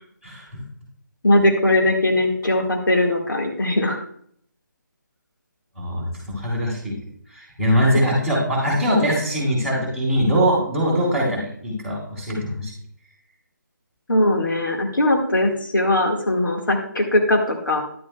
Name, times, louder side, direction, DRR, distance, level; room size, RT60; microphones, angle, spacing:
voice 1, 0.2-0.6 5.8-6.9 7.3-12.7, equal, 5° left, -8 dB, 3.6 m, -22 dB
voice 2, 1.2-4.0 14.1-17.8, left 1 dB, 80° left, 1 dB, 1.8 m, -20 dB
11.5 x 8.6 x 2.3 m, 0.65 s
figure-of-eight pair, 160°, 11 cm